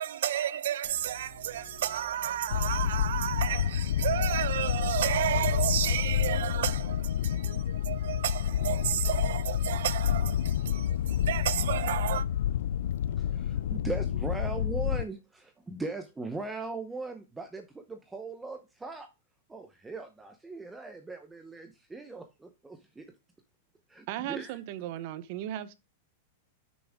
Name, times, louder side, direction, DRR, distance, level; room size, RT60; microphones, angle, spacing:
voice 1, 0.0-12.3, right 11 dB, 75° right, 0.6 m, -32 dB
Bus, 0.8-13.8, left 1 dB, 45° left, 2.2 m, -51 dB
sound 1, 2.5-15.0, left 10 dB, 85° left, 0.4 m, -29 dB
voice 2, 13.2-19.1 19.5-23.1 23.9-24.6, right 3 dB, 5° right, 0.7 m, -39 dB
voice 3, 24.1-25.8, right 12 dB, 45° right, 0.8 m, -36 dB
8.3 x 6.3 x 3.5 m
supercardioid pair, 165°, 0 cm